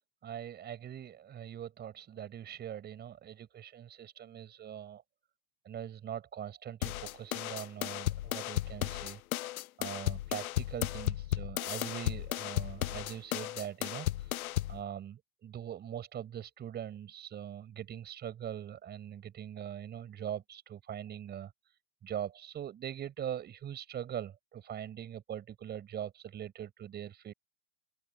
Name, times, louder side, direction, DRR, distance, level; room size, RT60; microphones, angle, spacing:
voice 1, 0.2-5.0 5.6-9.2 9.8-14.4 14.7-27.3, right 10 dB, 25° right, 5.8 m, -42 dB
sound 1, 6.8-14.8, left 14 dB, 75° left, 0.7 m, -35 dB
open air
hypercardioid pair, 130°, 43 cm